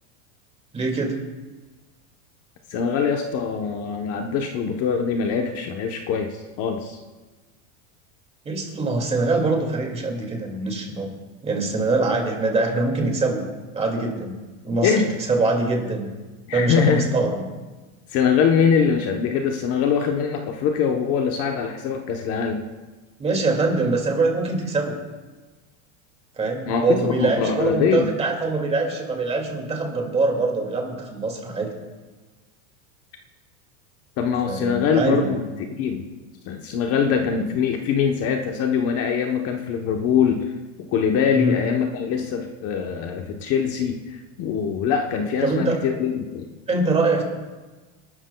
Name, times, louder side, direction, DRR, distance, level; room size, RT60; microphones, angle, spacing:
voice 1, 0.7-1.2 8.4-11.1 11.4-13.4 13.7-14.4 14.6-16.1 16.5-17.5 23.2-25.0 26.4-31.7 34.5-35.4 41.3-41.5 45.4-45.8 46.7-47.2, right 3 dB, 15° right, 1 dB, 2.2 m, -23 dB
voice 2, 2.7-7.0 14.8-15.1 16.5-17.1 18.1-22.7 26.7-28.2 34.2-36.0 36.4-40.5 40.9-46.5, left 6 dB, 40° left, 3 dB, 1.0 m, -23 dB
28.5 x 12.5 x 2.3 m, 1.3 s
supercardioid pair, 155°, 39 cm